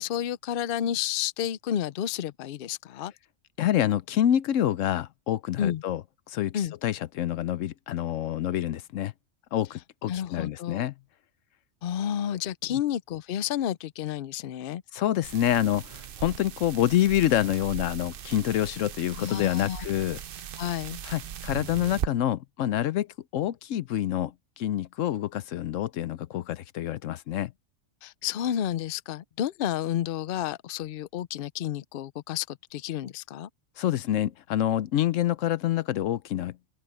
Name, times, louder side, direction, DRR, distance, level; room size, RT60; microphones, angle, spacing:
voice 1, 0.0-3.1 5.6-5.8 6.5-6.7 10.1-10.9 11.8-14.8 19.1-19.8 20.6-21.0 28.0-33.5, left 10 dB, 55° left, 0.7 m, -31 dB
voice 2, 3.6-6.0 6.3-9.1 9.5-10.9 12.7-12.8 14.9-20.2 21.0-23.1 23.3-27.5 33.8-36.8, left 12 dB, 80° left, 1.0 m, -27 dB
sound 1, 15.2-22.1, right 9 dB, 55° right, 0.7 m, -38 dB
open air
omnidirectional pair, 1.3 m